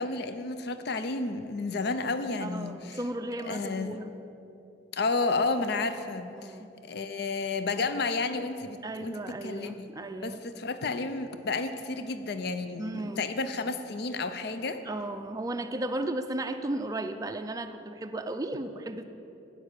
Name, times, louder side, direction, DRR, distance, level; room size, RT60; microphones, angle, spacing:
voice 1, 0.0-3.0 3.4-4.0 4.9-6.6 6.8-9.2 9.4-9.9 10.2-14.8, left 3 dB, 55° left, 10 dB, 0.5 m, -31 dB
voice 2, 2.4-4.1 6.3-6.7 8.8-10.4 12.8-13.2 14.8-19.0, right 1 dB, 20° right, 7 dB, 0.4 m, -35 dB
8.7 x 8.3 x 6.7 m, 2.7 s
head